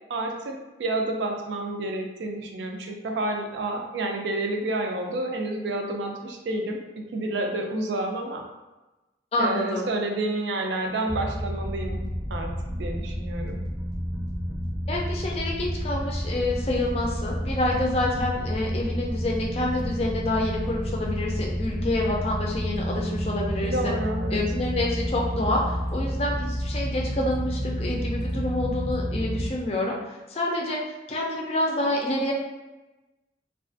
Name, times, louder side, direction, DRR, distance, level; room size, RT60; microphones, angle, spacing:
voice 1, 0.1-6.8 7.1-8.4 9.4-12.0 12.3-12.5 12.8-13.6 23.6-24.4, right 2 dB, 80° right, 3 dB, 0.4 m, -29 dB
voice 2, 9.3-9.9 14.9-24.0 24.3-29.9 30.3-30.8 31.1-32.3, left 1 dB, 35° left, -2 dB, 0.4 m, -27 dB
sound 1, 11.1-29.5, equal, ahead, 0.7 m, -30 dB
2.4 x 2.3 x 2.5 m, 1.1 s
head